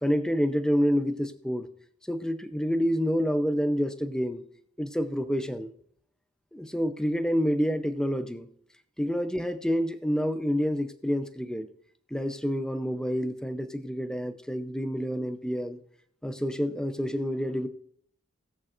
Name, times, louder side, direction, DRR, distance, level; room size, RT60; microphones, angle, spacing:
voice 1, 0.0-1.7 2.1-4.4 4.8-5.7 6.5-8.5 9.0-11.7 12.1-15.8 16.2-17.7, equal, 5° left, 8 dB, 0.6 m, -28 dB
20.5 x 7.5 x 2.5 m, 0.66 s
head